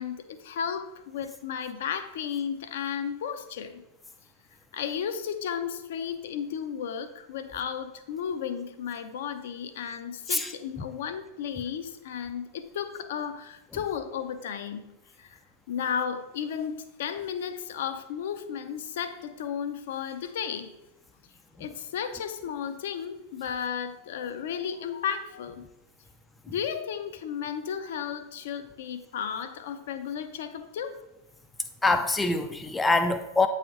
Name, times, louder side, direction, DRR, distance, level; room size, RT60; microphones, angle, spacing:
voice 1, 0.0-3.8 4.7-14.9 15.2-15.4 15.7-20.7 21.6-25.6 26.5-31.0, left 8 dB, 55° left, 9 dB, 0.6 m, -34 dB
voice 2, 31.8-33.5, left 3 dB, 10° left, 7 dB, 0.4 m, -24 dB
8.1 x 4.2 x 3.7 m, 0.97 s
figure-of-eight pair, 90°, 0 cm